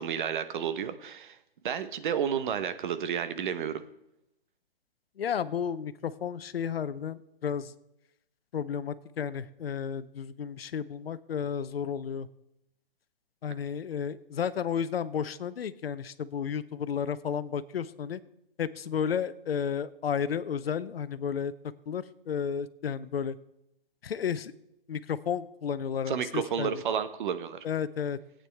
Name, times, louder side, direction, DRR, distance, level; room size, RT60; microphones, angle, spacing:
voice 1, 0.0-1.4 1.6-3.8 26.1-27.6, right 8 dB, 55° right, 11 dB, 1.0 m, -31 dB
voice 2, 5.2-7.7 8.5-12.3 13.4-18.2 18.6-21.5 21.9-23.4 24.0-24.5 24.9-26.7 27.6-28.2, left 7 dB, 80° left, 15 dB, 0.7 m, -32 dB
17.0 x 8.8 x 3.4 m, 0.84 s
hypercardioid pair, 140°, 29 cm